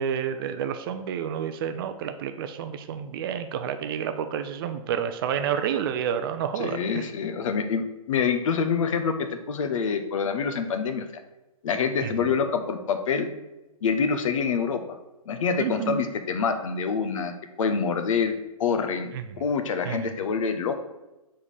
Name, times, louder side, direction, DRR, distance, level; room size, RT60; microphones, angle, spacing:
voice 1, 0.0-7.0 12.0-12.1 15.6-16.1 19.1-19.2 19.9-20.1, right 8 dB, 40° right, 9 dB, 0.5 m, -29 dB
voice 2, 6.6-7.8 8.1-11.0 11.6-13.3 13.8-14.8 15.3-18.3 18.6-20.8, left 6 dB, 60° left, 7 dB, 0.7 m, -26 dB
4.6 x 3.7 x 5.4 m, 1.0 s
hypercardioid pair, 130°, 19 cm